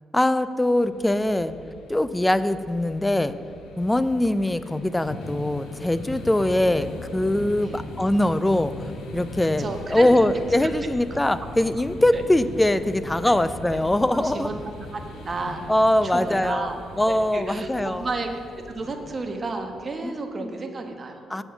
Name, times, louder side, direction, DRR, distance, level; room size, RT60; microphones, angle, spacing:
voice 1, 0.1-1.5 1.9-3.3 3.8-8.7 9.1-14.5 15.7-18.1 20.0-20.5 21.3-21.4, left 1 dB, 10° left, 14 dB, 0.4 m, -22 dB
sound 1, 0.9-19.9, left 1 dB, 80° left, 1.3 m, -40 dB
voice 2, 7.4-7.8 9.6-10.2 10.6-10.7 11.1-11.2 12.1-12.2 13.2-13.3 13.7-13.8 14.1-14.6 14.9-15.6 16.0-16.7 17.1-18.3 18.5-21.2, right 3 dB, 35° right, 5 dB, 1.1 m, -32 dB
7.8 x 6.0 x 7.0 m, 2.3 s
cardioid pair, 90°, 0 cm